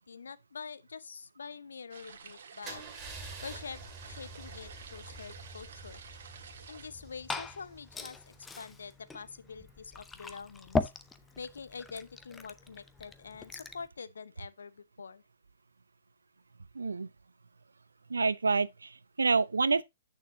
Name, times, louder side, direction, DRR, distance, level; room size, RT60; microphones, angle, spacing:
voice 1, 0.1-2.8 3.4-6.0 6.7-10.9 11.4-15.2, left 5 dB, 70° left, 0.7 m, -45 dB
sound 1, 1.9-6.9, right 6 dB, 55° right, 1.7 m, -51 dB
Car / Engine starting / Idling, 2.6-8.5, right 3 dB, 20° right, 2.5 m, -48 dB
Glass / Fill (with liquid), 6.8-13.9, left 3 dB, 10° left, 0.7 m, -39 dB
voice 2, 16.7-17.1 18.1-19.8, right 4 dB, 75° right, 0.6 m, -28 dB
9.2 x 6.6 x 2.8 m
figure-of-eight pair, 120°, 0 cm